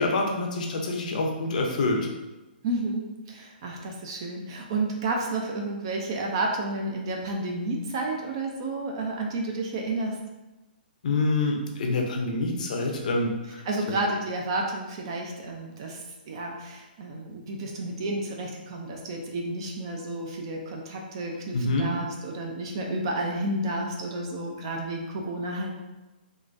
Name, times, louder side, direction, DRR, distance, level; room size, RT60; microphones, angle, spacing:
voice 1, 0.0-2.1 11.0-14.0 21.5-21.9, left 2 dB, 45° left, 1 dB, 0.6 m, -26 dB
voice 2, 2.6-10.2 13.7-25.7, right 2 dB, 30° right, 1 dB, 0.4 m, -31 dB
3.6 x 2.5 x 2.5 m, 1.1 s
hypercardioid pair, 170°, 6 cm